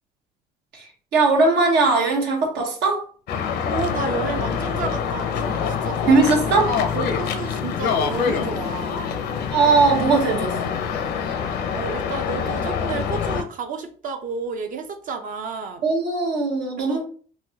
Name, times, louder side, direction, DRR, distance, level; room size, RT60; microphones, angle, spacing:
voice 1, 1.1-3.1 6.1-6.7 9.5-10.7 15.8-17.0, right 3 dB, 85° right, 1 dB, 1.1 m, -19 dB
sound 1, 3.3-13.4, left 7 dB, 70° left, 0.6 m, -25 dB
voice 2, 3.6-6.1 6.9-9.1 11.7-15.8 16.8-17.0, right 4 dB, 50° right, 6 dB, 0.5 m, -31 dB
4.1 x 2.3 x 2.7 m, 0.41 s
cardioid pair, 110°, 17 cm